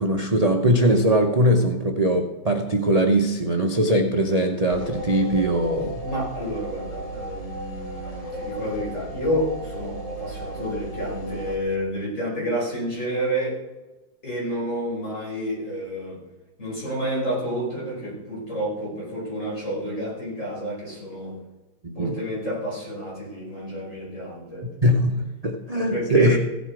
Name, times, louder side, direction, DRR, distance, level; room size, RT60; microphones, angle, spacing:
voice 1, 0.0-6.0 21.8-22.1 24.6-26.4, right 1 dB, 85° right, 3 dB, 0.3 m, -21 dB
sound 1, 4.7-11.6, right 1 dB, 20° left, 1.1 m, -35 dB
voice 2, 6.0-13.6 14.2-16.2 16.6-21.3 22.0-24.7 25.9-26.4, equal, 35° left, -5 dB, 5.8 m, -29 dB
16.0 x 8.0 x 4.7 m, 1.1 s
omnidirectional pair, 2.2 m